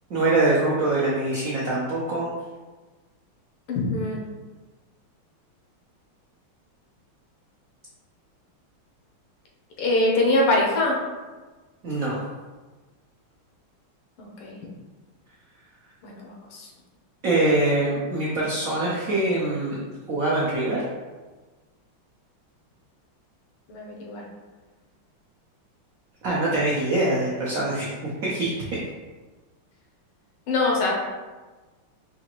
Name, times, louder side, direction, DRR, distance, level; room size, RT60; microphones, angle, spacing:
voice 1, 0.1-2.3 11.8-12.2 17.2-19.8 20.1-20.9 26.2-27.9 28.2-28.5, right 2 dB, 80° right, -5 dB, 0.7 m, -23 dB
voice 2, 3.7-4.2 9.8-11.0 14.2-14.6 16.0-16.7 23.7-24.3 30.5-30.9, left 2 dB, 90° left, -1 dB, 1.7 m, -23 dB
4.9 x 2.4 x 2.9 m, 1.3 s
omnidirectional pair, 2.3 m